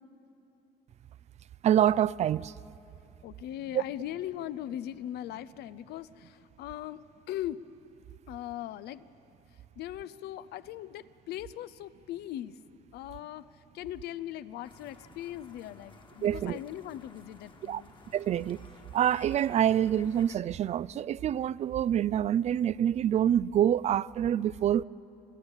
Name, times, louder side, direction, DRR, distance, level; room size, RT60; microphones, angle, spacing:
voice 1, 1.6-2.5 3.7-3.8 16.2-16.6 17.6-17.8 18.1-18.7 18.9-24.8, right 10 dB, 40° right, 0.3 m, -26 dB
voice 2, 3.2-7.0 7.3-7.6 8.3-9.1 9.8-12.6 12.9-17.9, left 12 dB, 75° left, 0.6 m, -39 dB
sound 1, 14.6-20.4, left 4 dB, 30° left, 1.5 m, -54 dB
27.5 x 11.5 x 8.9 m
cardioid pair, 110°, 17 cm